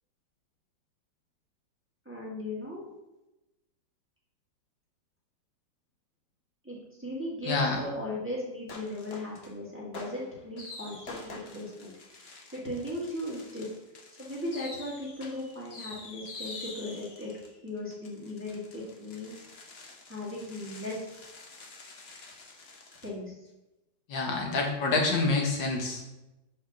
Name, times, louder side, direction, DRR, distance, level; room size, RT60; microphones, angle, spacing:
voice 1, 2.0-2.9 6.6-13.7 14.2-17.3 17.6-19.4 20.1-21.0 23.0-23.3, left 1 dB, 5° right, -6 dB, 1.4 m, -37 dB
voice 2, 7.4-7.8 24.1-26.2, left 3 dB, 85° left, 1 dB, 1.8 m, -27 dB
sound 1, 8.7-9.5 9.9-23.1, left 3 dB, 45° left, 0.9 m, -47 dB
5.2 x 4.2 x 5.7 m, 0.98 s
omnidirectional pair, 1.9 m